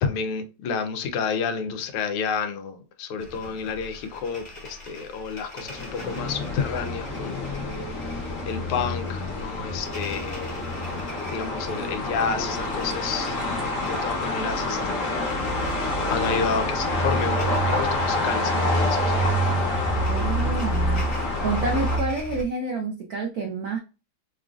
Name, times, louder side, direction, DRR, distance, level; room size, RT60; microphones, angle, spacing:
voice 1, 0.0-7.8 8.5-10.6 11.3-13.4 13.9-15.3 15.7-19.1, left 6 dB, 85° left, 1.5 m, -30 dB
sound 1, 3.2-22.4, right 1 dB, 25° left, 0.7 m, -31 dB
sound 2, 5.6-22.0, left 2 dB, 50° left, 1.0 m, -28 dB
voice 2, 20.1-21.0 21.4-23.8, right 3 dB, 80° right, 0.8 m, -28 dB
4.9 x 2.4 x 2.4 m
omnidirectional pair, 2.4 m